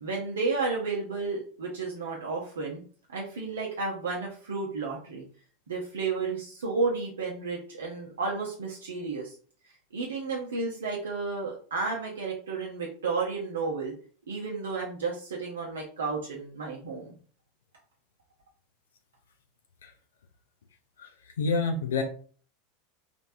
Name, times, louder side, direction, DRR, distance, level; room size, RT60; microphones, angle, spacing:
voice 1, 0.0-2.8 3.1-5.2 5.7-9.4 9.9-13.9 14.3-17.1, right 4 dB, 70° right, -2 dB, 0.7 m, -32 dB
voice 2, 21.4-22.0, left 4 dB, 70° left, 5 dB, 0.4 m, -27 dB
3.2 x 2.5 x 2.6 m, 0.43 s
figure-of-eight pair, 80°, 0 cm